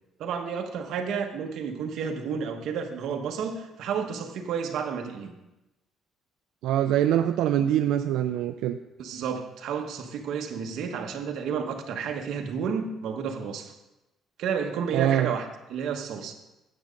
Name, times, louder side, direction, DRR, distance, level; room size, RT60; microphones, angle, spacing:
voice 1, 0.2-5.3 9.0-13.7 14.4-16.3, right 6 dB, 60° right, 4 dB, 1.1 m, -31 dB
voice 2, 6.6-8.8 14.9-15.3, right 11 dB, 90° right, 7 dB, 0.4 m, -24 dB
9.0 x 7.3 x 5.2 m, 0.99 s
cardioid pair, 165°, 0 cm